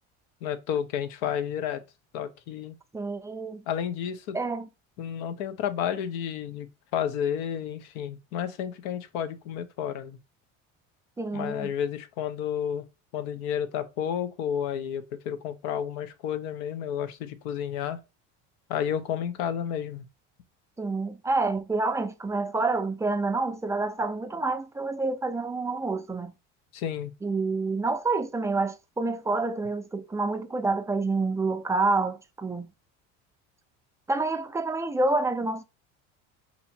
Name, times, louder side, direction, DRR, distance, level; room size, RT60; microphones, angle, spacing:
voice 1, 0.4-1.8 2.1-2.7 3.7-4.4 5.0-10.2 11.3-12.8 13.1-18.0 18.7-20.0 26.7-27.1, left 9 dB, 75° left, 0.8 m, -31 dB
voice 2, 2.9-3.6 4.3-4.7 11.2-11.7 20.8-26.3 27.2-32.7 34.1-35.6, right 3 dB, 10° right, 0.3 m, -28 dB
2.9 x 2.7 x 4.2 m
supercardioid pair, 100°, 36 cm